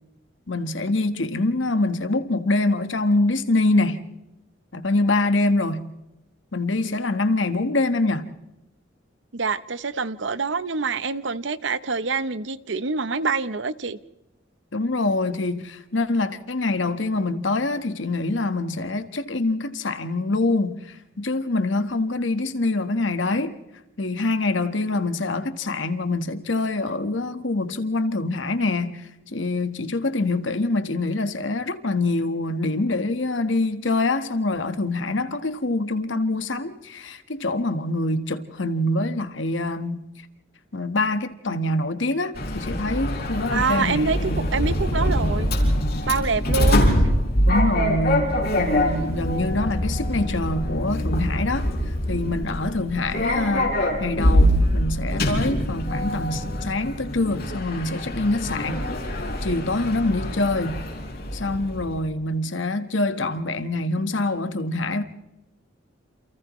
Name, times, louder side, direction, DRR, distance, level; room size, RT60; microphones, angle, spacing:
voice 1, 0.5-4.1 4.7-5.9 6.5-8.3 14.7-20.8 21.2-23.5 24.0-40.0 40.7-44.5 47.5-51.7 52.1-53.7 54.0-58.8 59.4-60.9 61.3-65.0, left 2 dB, 80° left, 1.5 m, -25 dB
voice 2, 9.3-14.0 43.5-45.5 46.1-46.9, right 4 dB, 75° right, 0.9 m, -26 dB
Sliding door, 42.4-62.0, equal, 55° left, 4.9 m, -24 dB
29.0 x 28.0 x 3.2 m
head